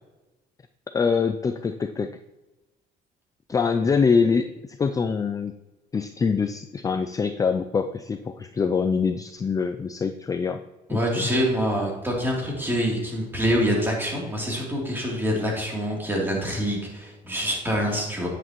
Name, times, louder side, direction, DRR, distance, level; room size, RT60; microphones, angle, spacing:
voice 1, 0.9-2.2 3.5-5.5 5.9-10.6 10.9-11.3, left 5 dB, 20° left, 9 dB, 0.3 m, -24 dB
voice 2, 10.9-18.3, equal, 10° right, -3 dB, 3.1 m, -25 dB
9.9 x 8.0 x 3.1 m, 1.1 s
cardioid pair, 110°, 17 cm